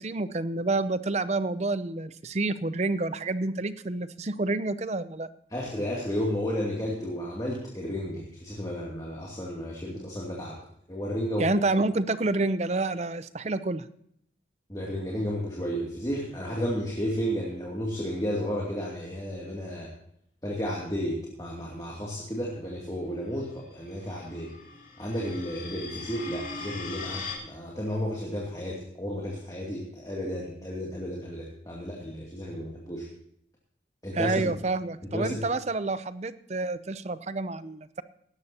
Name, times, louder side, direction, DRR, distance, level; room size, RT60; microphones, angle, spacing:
voice 1, 0.0-5.3 11.4-13.9 34.1-38.0, right 2 dB, 35° right, 14 dB, 0.6 m, -28 dB
voice 2, 5.5-10.6 10.9-11.5 14.7-19.9 20.4-24.5 25.0-33.1 34.0-34.5 35.1-35.4, equal, 20° left, -4 dB, 2.6 m, -32 dB
sound 1, 23.8-27.4, left 4 dB, 45° left, 3.4 m, -40 dB
18.0 x 13.5 x 2.9 m, 0.69 s
head